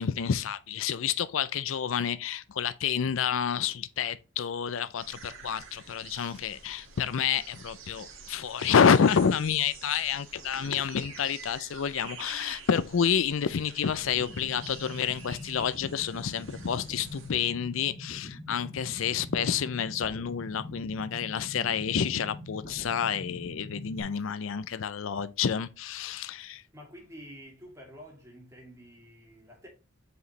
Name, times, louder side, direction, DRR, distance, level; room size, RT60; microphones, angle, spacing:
voice 1, 0.0-26.6, left 7 dB, 75° left, 0.5 m, -29 dB
sound 1, 5.0-17.3, right 5 dB, 80° right, 1.9 m, -48 dB
sound 2, 14.0-24.0, left 1 dB, 55° left, 1.6 m, -43 dB
voice 2, 26.7-29.7, equal, 15° right, 2.5 m, -49 dB
7.9 x 5.0 x 3.2 m
head